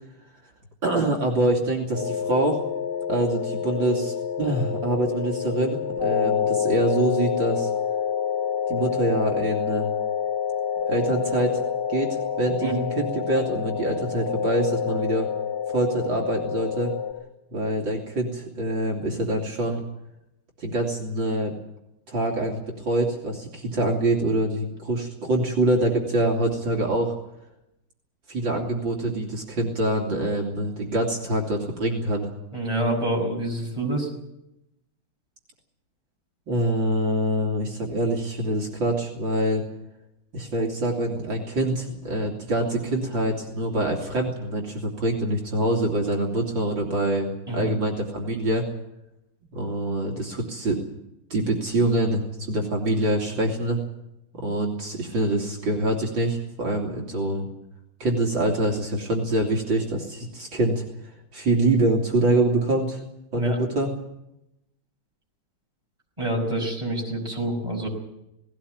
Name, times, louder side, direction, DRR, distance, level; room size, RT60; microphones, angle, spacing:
voice 1, 0.8-2.6 3.1-7.7 8.7-9.9 10.9-11.6 11.9-15.3 15.7-16.9 17.5-19.8 20.6-21.5 22.1-27.2 28.3-32.3 36.5-39.6 40.3-48.7 49.5-50.8 51.3-53.8 54.4-57.5 58.0-63.0 63.3-63.9, right 1 dB, 65° right, 0 dB, 3.5 m, -25 dB
sound 1, 1.9-17.1, left 7 dB, 25° left, 5.6 m, -27 dB
voice 2, 32.5-34.1 47.5-47.7 63.4-63.6 66.2-67.9, right 1 dB, 15° right, 0 dB, 5.8 m, -27 dB
18.5 x 17.5 x 9.4 m, 0.85 s
omnidirectional pair, 2.3 m